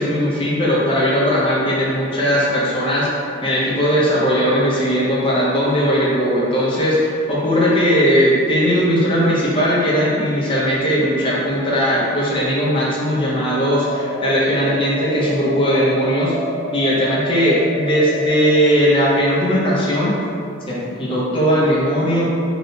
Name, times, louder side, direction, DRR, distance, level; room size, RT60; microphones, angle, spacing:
voice 1, 0.0-3.1 3.4-16.4 16.7-20.1 20.7-22.3, equal, 25° left, -6 dB, 0.5 m, -18 dB
sound 1, 13.6-18.6, equal, 50° right, 0.6 m, -29 dB
3.1 x 2.8 x 2.6 m, 2.5 s
head